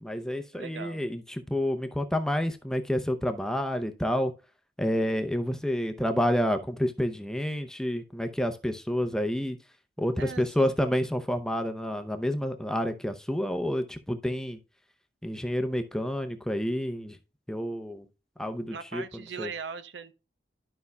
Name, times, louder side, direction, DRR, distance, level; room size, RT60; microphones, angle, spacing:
voice 1, 0.0-4.3 4.8-9.6 10.0-14.6 15.2-17.2 17.5-18.1 18.4-19.0 19.4-19.5, equal, 5° left, 0.6 m, -29 dB
voice 2, 0.5-1.0 10.2-10.7 18.7-20.1, right 5 dB, 80° right, 0.7 m, -39 dB
12.0 x 5.5 x 2.2 m
head